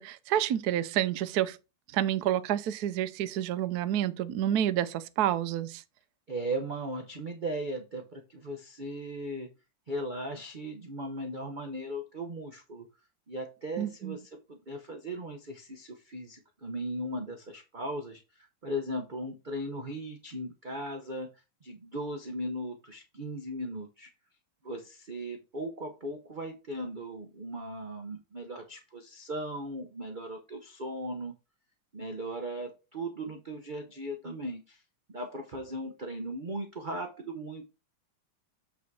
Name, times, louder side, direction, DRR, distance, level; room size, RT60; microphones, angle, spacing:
voice 1, 0.0-1.6 1.9-5.8 13.8-14.2, right 11 dB, 70° right, 1.0 m, -29 dB
voice 2, 6.3-9.5 9.9-12.9 13.3-14.2 14.5-21.3 21.6-24.1 24.6-31.3 31.9-34.8 35.1-37.7, right 1 dB, 45° right, 0.6 m, -37 dB
8.5 x 4.1 x 4.6 m
omnidirectional pair, 2.3 m